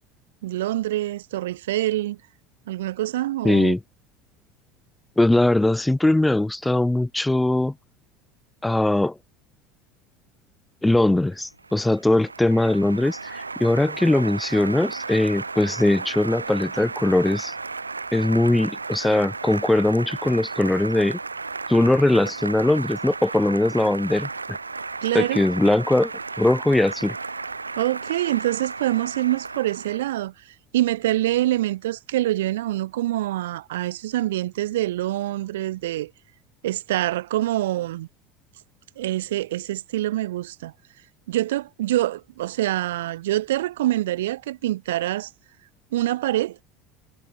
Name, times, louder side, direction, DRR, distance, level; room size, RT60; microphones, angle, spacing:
voice 1, 0.4-2.2 2.7-3.7 25.0-25.4 27.8-30.3 30.7-36.1 36.6-38.1 39.0-40.7 41.3-45.3 45.9-46.6, right 15 dB, 70° right, 0.5 m, -25 dB
voice 2, 3.4-3.8 5.2-7.7 8.6-9.2 10.8-17.5 18.1-21.2 21.7-24.3 25.1-26.1 26.4-27.2, left 1 dB, 10° left, 0.4 m, -20 dB
Applause, 11.3-30.2, right 4 dB, 85° right, 1.2 m, -34 dB
figure-of-eight pair, 70°, 0 cm